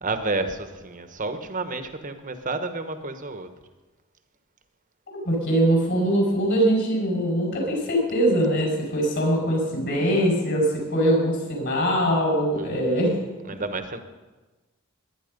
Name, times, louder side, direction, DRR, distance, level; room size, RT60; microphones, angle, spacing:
voice 1, 0.0-3.5 12.6-13.0 13.4-14.0, right 3 dB, 35° right, 8 dB, 1.2 m, -31 dB
voice 2, 5.1-13.2, right 1 dB, 50° left, -1 dB, 5.6 m, -22 dB
21.5 x 9.9 x 5.3 m, 1.2 s
head